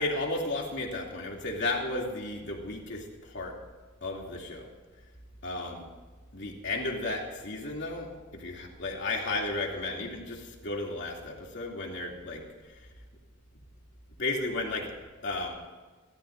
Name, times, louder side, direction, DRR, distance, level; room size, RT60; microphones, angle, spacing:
voice 1, 0.0-3.5 4.0-4.7 5.4-5.8 6.3-12.4 14.2-14.9 15.2-15.5, left 2 dB, 60° left, -1 dB, 2.8 m, -33 dB
28.0 x 13.5 x 2.6 m, 1.4 s
head